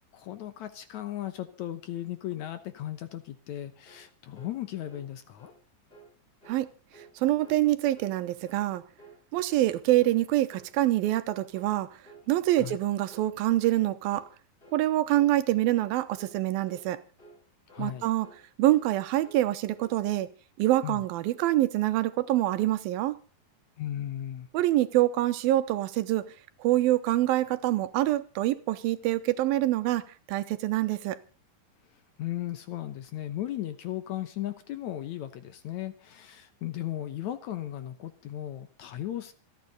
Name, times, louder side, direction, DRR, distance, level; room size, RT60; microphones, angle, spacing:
voice 1, 0.1-5.5 12.6-12.8 17.7-18.1 20.8-21.0 23.8-24.5 32.2-39.3, left 12 dB, 65° left, 1.9 m, -36 dB
sound 1, 3.9-4.1 4.4-4.6 4.9-5.1 5.4-5.6 5.9-6.1 6.4-6.6 6.9-7.2 7.4-7.7 8.0-8.2 8.5-8.7 9.0-9.2 9.5-9.7 10.0-10.2 10.5-10.7 11.0-11.3 11.5-11.8 12.0-12.3 12.6-12.8 13.1-13.3 13.6-13.8 14.1-14.3 14.6-14.8 15.1-15.4 15.6-15.9 16.2-16.4 16.7-16.9 17.2-17.4 17.7-17.9 18.2-18.5 18.7-18.9 19.2-19.5 19.7-20.0, right 3 dB, 15° left, 5.7 m, -53 dB
voice 2, 7.2-8.8 9.3-11.9 12.3-14.3 14.7-17.0 17.8-18.3 18.6-20.3 20.6-23.2 24.5-26.3 26.6-31.2, right 15 dB, 80° right, 2.7 m, -25 dB
27.5 x 9.5 x 4.1 m
omnidirectional pair, 4.2 m